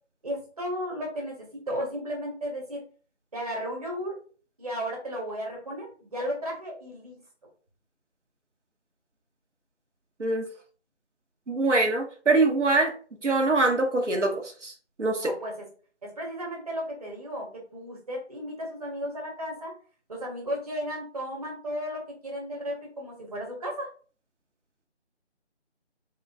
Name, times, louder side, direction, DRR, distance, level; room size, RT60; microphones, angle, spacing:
voice 1, 0.2-1.3 1.7-2.8 3.3-4.1 4.6-7.2 15.2-15.6 16.0-19.7 20.1-23.9, equal, 30° right, -1 dB, 1.1 m, -34 dB
voice 2, 11.5-12.9 13.2-14.7 15.0-15.3, right 2 dB, 90° right, 2 dB, 1.0 m, -23 dB
3.8 x 2.4 x 3.4 m, 0.40 s
figure-of-eight pair, 160°, 35 cm